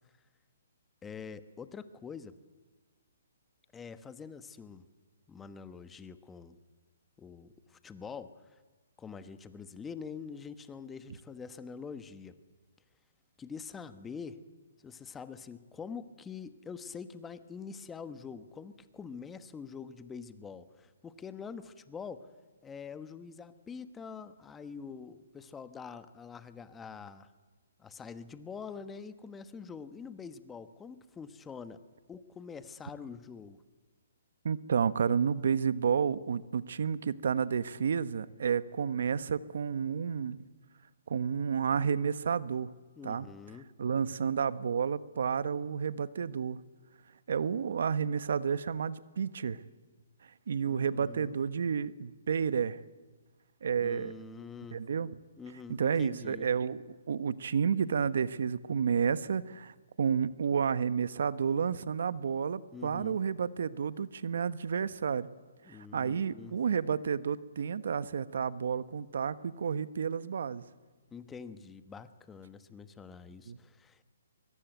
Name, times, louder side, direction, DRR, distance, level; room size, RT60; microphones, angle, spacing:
voice 1, 1.0-2.3 3.7-4.9 5.3-6.6 7.2-8.6 9.0-12.3 13.4-14.4 14.8-22.3 22.6-27.3 27.8-31.8 32.1-33.6 43.0-43.7 50.6-51.3 53.8-54.8 55.4-56.5 62.7-63.2 65.6-66.6 71.1-74.0, left 6 dB, 10° left, 11 dB, 1.2 m, -45 dB
voice 2, 34.4-40.4 41.1-42.7 43.0-43.3 43.8-46.6 47.3-49.6 50.5-52.8 53.6-54.1 54.7-55.2 55.7-56.8 57.1-65.3 65.7-70.6 73.5-73.6, right 7 dB, 70° right, 15 dB, 1.1 m, -31 dB
23.0 x 22.5 x 9.3 m, 1.3 s
hypercardioid pair, 150°, 0 cm